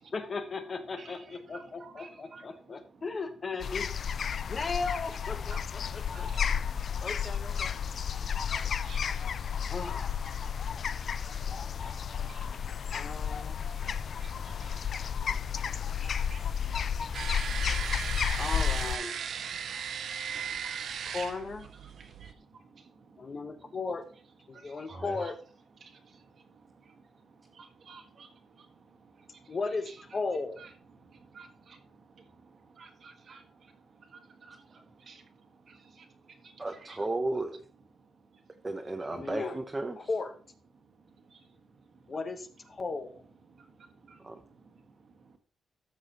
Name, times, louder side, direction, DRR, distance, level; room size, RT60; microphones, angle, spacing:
voice 1, 0.1-3.9 4.5-6.3 7.0-7.7 9.7-10.3 12.9-13.6 15.9-16.4 18.4-19.2 21.1-21.7 23.2-24.0 24.5-25.4 29.5-30.6 39.1-39.6 40.1-40.3 42.1-43.2, left 4 dB, 40° left, 8 dB, 1.0 m, -36 dB
voice 2, 1.0-2.5 4.3-4.5 5.5-5.6 5.8-9.7 10.4-13.2 13.5-18.7 19.7-21.1 21.8-23.3 24.5-25.3 25.8-29.6 29.9-30.0 30.6-30.7 31.0-37.0 38.3-38.4 41.0-42.2 43.5-45.4, right 4 dB, 50° right, 5 dB, 1.6 m, -55 dB
sound 1, 3.6-19.0, left 7 dB, 55° left, 0.3 m, -32 dB
sound 2, 17.1-22.3, right 7 dB, 65° right, 0.6 m, -37 dB
voice 3, 24.9-25.2 36.6-37.7 38.6-40.1 44.2-44.4, right 2 dB, 20° right, 4 dB, 0.8 m, -34 dB
13.5 x 6.2 x 2.9 m, 0.42 s
cardioid pair, 110°, 0 cm